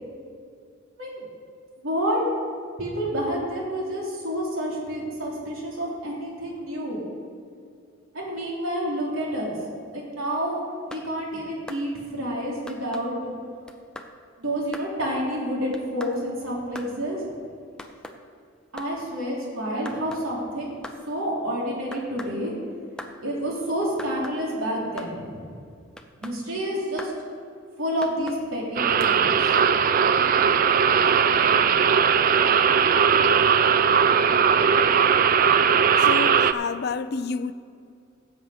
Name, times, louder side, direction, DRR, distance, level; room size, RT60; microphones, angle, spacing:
voice 1, 1.8-2.2 2.8-7.0 8.1-9.5 9.9-13.3 14.4-17.2 18.7-20.8 21.1-22.5 23.2-25.5 26.2-27.1 27.8-29.5, equal, 80° right, 3.3 m, -29 dB
sound 1, 10.7-11.1 11.7-11.8 12.7-13.1 13.7-14.1 14.7-14.9 15.7-16.2 16.7-16.9 17.8-18.2 18.8-18.9 19.9-20.3 20.8-21.0 21.9-22.4 23.0-23.2 24.0-24.4 25.0-25.1 26.0-26.4 27.0-27.2 28.0-28.4 29.0-29.1, left 1 dB, 5° left, 0.6 m, -40 dB
sound 2, 28.8-36.5, right 7 dB, 40° right, 0.3 m, -19 dB
voice 2, 36.0-37.5, left 5 dB, 50° left, 0.4 m, -29 dB
16.5 x 7.4 x 5.0 m
head